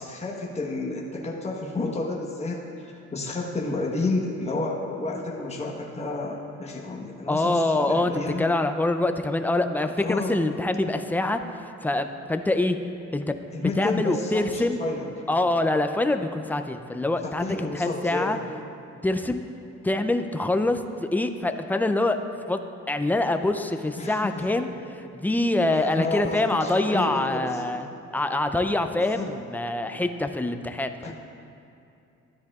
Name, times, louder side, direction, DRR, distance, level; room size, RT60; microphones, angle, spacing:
voice 1, 0.0-8.4 10.0-10.4 13.5-15.1 17.2-18.4 24.0-24.5 25.7-27.6 29.0-29.3 31.0-31.1, left 3 dB, 20° left, -2 dB, 1.2 m, -31 dB
voice 2, 7.3-8.1 8.4-12.8 13.1-14.8 15.3-18.4 19.0-19.4 19.8-22.2 22.5-22.6 22.9-27.9 28.1-31.1, left 2 dB, 5° left, 7 dB, 0.4 m, -25 dB
13.0 x 10.0 x 2.4 m, 2.7 s
cardioid pair, 90°, 30 cm